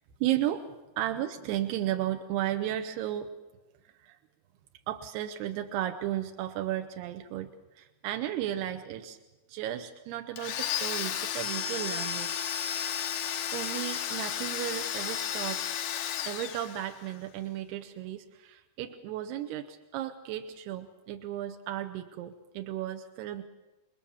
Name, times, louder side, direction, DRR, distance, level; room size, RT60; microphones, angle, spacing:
voice 1, 0.2-0.7 1.0-3.3 4.0-4.2 4.9-7.5 7.8-9.2 9.5-12.4 12.8-13.0 13.5-15.6 16.2-23.4, right 12 dB, 90° right, 6 dB, 3.0 m, -34 dB
Domestic sounds home sounds, 10.4-17.2, left 9 dB, 75° left, 3.1 m, -33 dB
28.5 x 20.5 x 7.1 m, 1.1 s
omnidirectional pair, 4.5 m